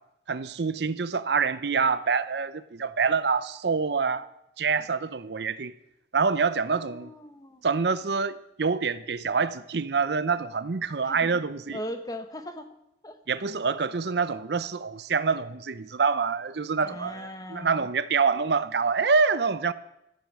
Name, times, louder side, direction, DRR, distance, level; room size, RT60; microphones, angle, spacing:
voice 1, 0.3-4.3 4.6-5.7 6.1-7.1 7.6-11.8 13.3-19.7, right 5 dB, 65° right, 0.6 m, -26 dB
voice 2, 6.7-7.6 11.0-11.3 11.7-12.6 13.0-13.2 16.8-17.9, equal, 20° left, 1.1 m, -39 dB
13.5 x 10.5 x 7.4 m
head